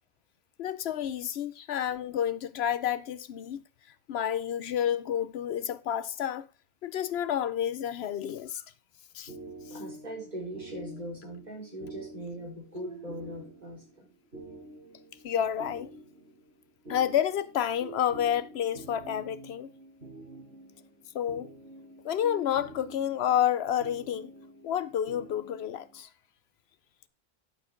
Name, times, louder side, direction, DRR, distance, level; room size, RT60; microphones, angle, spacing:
voice 1, 0.6-3.6 4.1-6.5 6.8-8.6 9.1-9.3 15.2-15.9 16.9-19.7 21.1-21.5 22.0-24.3 24.6-26.1, left 10 dB, 75° left, 0.9 m, -30 dB
sound 1, 9.3-26.0, right 1 dB, 75° right, 5.6 m, -48 dB
voice 2, 9.7-14.1, right 1 dB, 40° right, 4.3 m, -40 dB
11.5 x 7.1 x 3.7 m
omnidirectional pair, 1.1 m